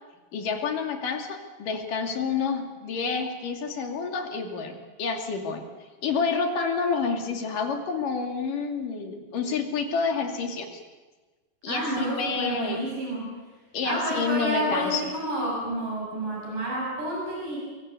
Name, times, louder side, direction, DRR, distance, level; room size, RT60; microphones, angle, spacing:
voice 1, 0.3-5.6 6.0-10.8 11.6-12.8 13.7-15.1, left 5 dB, 85° left, 3 dB, 4.3 m, -29 dB
voice 2, 11.7-13.3 13.8-17.6, right 1 dB, 80° right, -2 dB, 9.1 m, -29 dB
24.0 x 23.0 x 8.4 m, 1.3 s
omnidirectional pair, 3.7 m